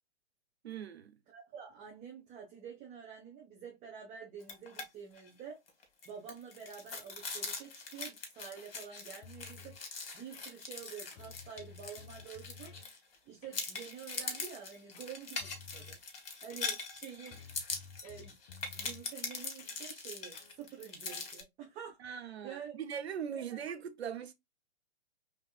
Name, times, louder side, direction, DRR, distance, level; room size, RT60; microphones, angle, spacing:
voice 1, 0.6-1.2 22.0-24.3, right 8 dB, 70° right, 0.7 m, -40 dB
voice 2, 1.3-5.6 6.1-12.9 13.3-16.0 16.4-17.4 18.0-18.4 18.7-22.8 23.3-23.4, right 7 dB, 20° right, 1.0 m, -48 dB
sound 1, 4.4-4.9 5.2-5.3 5.7-13.2 13.5-21.4, left 4 dB, 60° left, 1.6 m, -42 dB
sound 2, 9.2-9.8 10.3-10.8 11.1-12.9 13.4-13.7 14.2-14.5 14.9-16.0 16.5-17.0 17.3-19.1 19.6-19.8 20.3-20.6 21.1-21.3, left 6 dB, 35° left, 0.4 m, -54 dB
4.5 x 3.0 x 2.3 m
figure-of-eight pair, 115°, 33 cm